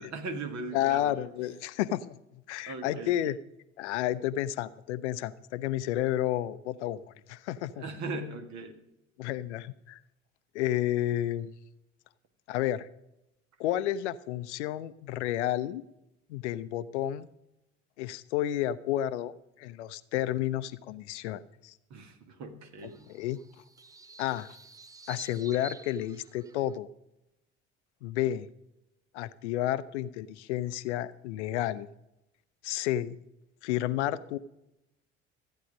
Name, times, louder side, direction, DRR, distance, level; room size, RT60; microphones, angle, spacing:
voice 1, 0.0-1.1 2.7-3.1 7.8-8.8 21.9-23.1, right 3 dB, 50° right, 6 dB, 1.7 m, -39 dB
voice 2, 0.7-2.2 2.5-3.4 3.8-7.0 7.3-7.8 9.2-10.0 10.5-11.5 12.5-12.9 13.6-15.8 16.3-17.3 18.0-21.7 23.1-23.4 24.2-24.6 25.1-26.9 28.0-28.5 29.1-31.9 32.6-33.2 33.6-34.4, left 13 dB, 70° left, 16 dB, 0.6 m, -31 dB
sound 1, 22.8-26.8, right 3 dB, 10° right, 0.4 m, -50 dB
14.0 x 9.2 x 5.2 m, 0.89 s
figure-of-eight pair, 55°, 35 cm